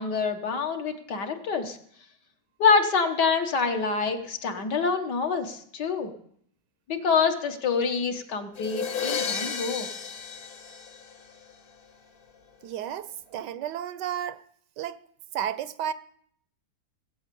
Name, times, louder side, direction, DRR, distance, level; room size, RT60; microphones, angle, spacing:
voice 1, 0.0-1.8 2.6-6.1 6.9-9.9, left 5 dB, 80° left, 2.0 m, -26 dB
sound 1, 8.6-11.5, left 6 dB, 55° left, 1.3 m, -33 dB
voice 2, 12.6-14.4 14.8-15.0 15.3-15.9, right 10 dB, 90° right, 1.4 m, -32 dB
18.0 x 8.4 x 6.9 m
omnidirectional pair, 1.8 m